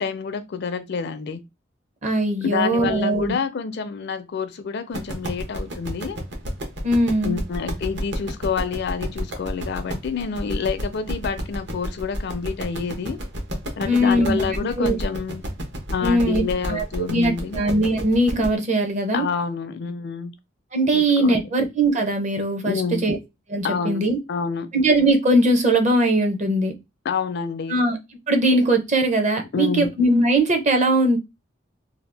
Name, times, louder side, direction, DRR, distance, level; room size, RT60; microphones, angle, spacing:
voice 1, 0.0-1.4 2.4-6.2 7.2-13.2 13.8-15.4 15.9-17.6 19.1-20.3 20.9-21.5 22.6-23.1 23.6-24.0 24.3-24.7 27.0-27.8 29.5-29.9, left 5 dB, 60° left, 0.4 m, -28 dB
voice 2, 2.0-3.3 6.8-7.4 13.9-15.0 16.0-16.4 16.7-16.8 17.1-19.2 20.7-22.8 23.0-23.2 23.5-24.2 24.7-26.7 27.7-28.0 28.3-31.2, right 1 dB, 40° right, 0.7 m, -20 dB
sound 1, 4.9-18.5, equal, 65° right, 1.0 m, -31 dB
2.8 x 2.3 x 3.3 m
head